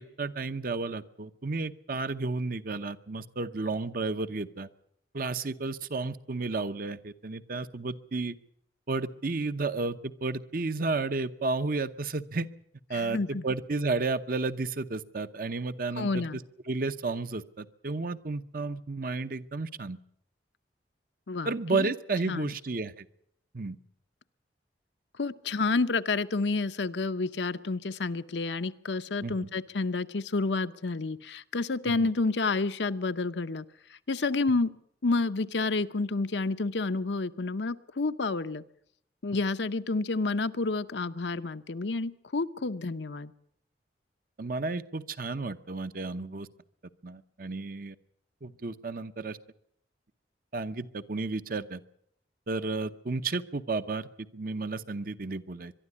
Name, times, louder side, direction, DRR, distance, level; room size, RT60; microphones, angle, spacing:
voice 1, 0.0-4.7 5.1-8.3 8.9-12.5 12.9-16.4 16.7-20.0 21.4-23.1 23.5-23.8 29.2-29.5 31.9-32.0 44.4-46.5 47.0-47.9 48.4-49.4 50.5-51.8 52.5-55.7, right 3 dB, 50° right, 11 dB, 0.8 m, -32 dB
voice 2, 12.9-13.4 16.0-16.4 21.3-21.9 22.3-22.5 25.2-33.6 34.1-34.7 35.0-38.6 39.2-43.3, left 3 dB, 75° left, 10 dB, 0.8 m, -29 dB
22.5 x 12.0 x 9.6 m, 0.70 s
head